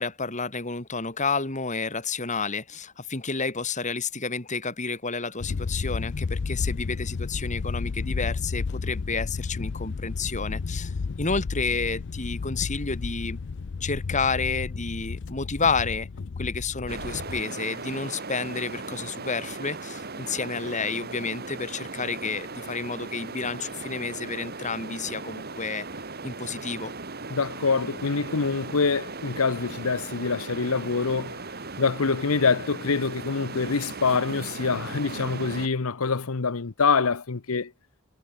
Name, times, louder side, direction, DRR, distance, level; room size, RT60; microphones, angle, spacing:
voice 1, 0.0-13.4 13.8-16.1 16.4-25.9 26.2-26.9, left 4 dB, 35° left, 3.2 m, -30 dB
sound 1, 5.4-17.4, left 4 dB, 55° left, 0.5 m, -32 dB
sound 2, 16.9-35.7, right 3 dB, 45° right, 3.0 m, -38 dB
voice 2, 27.3-31.4 31.8-37.7, left 4 dB, 85° left, 0.9 m, -25 dB
head